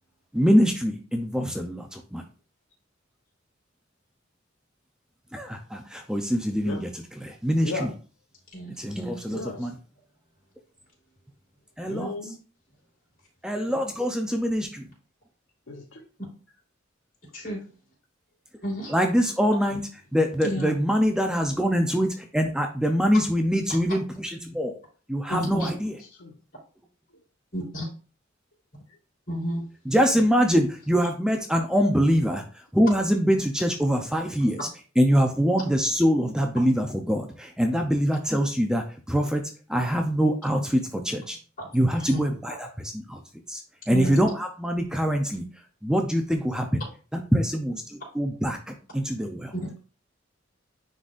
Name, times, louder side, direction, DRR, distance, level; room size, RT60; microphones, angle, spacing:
voice 1, 0.3-2.2 5.3-6.9 7.2-7.9 8.8-9.7 11.8-12.1 13.4-14.9 18.9-24.8 25.1-26.0 29.9-32.4 32.7-34.7 35.0-39.4 39.7-41.4 41.7-43.2 43.5-43.6 43.9-45.4 45.8-46.8 47.1-49.5, equal, 5° right, 3 dB, 0.6 m, -24 dB
voice 2, 7.6-7.9 9.2-9.7 11.8-12.4 15.7-16.1 23.5-23.8 26.0-26.4, left 2 dB, 85° left, 2 dB, 1.1 m, -36 dB
voice 3, 18.6-19.0 20.4-20.7 25.3-25.7 27.5-27.8 29.3-29.6 41.9-42.2 43.9-44.2 49.5-49.7, equal, 45° left, -3 dB, 3.5 m, -30 dB
9.6 x 4.0 x 2.5 m, 0.36 s
head